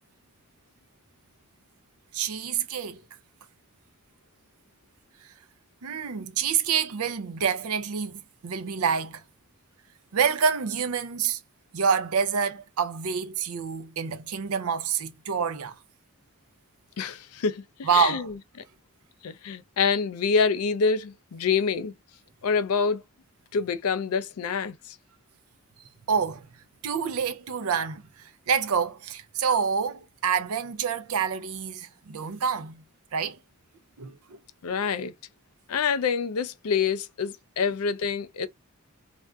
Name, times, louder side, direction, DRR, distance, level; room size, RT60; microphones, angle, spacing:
voice 1, 2.1-3.0 5.8-9.2 10.1-11.4 11.7-15.7 17.8-18.3 26.1-26.5 26.8-32.8 33.1-33.4 34.0-34.4, right 6 dB, 85° right, 0.5 m, -27 dB
voice 2, 17.0-18.3 19.2-21.9 22.4-23.0 23.5-25.0 34.6-35.1 35.7-38.5, left 5 dB, 85° left, 0.4 m, -26 dB
3.6 x 2.4 x 2.2 m
head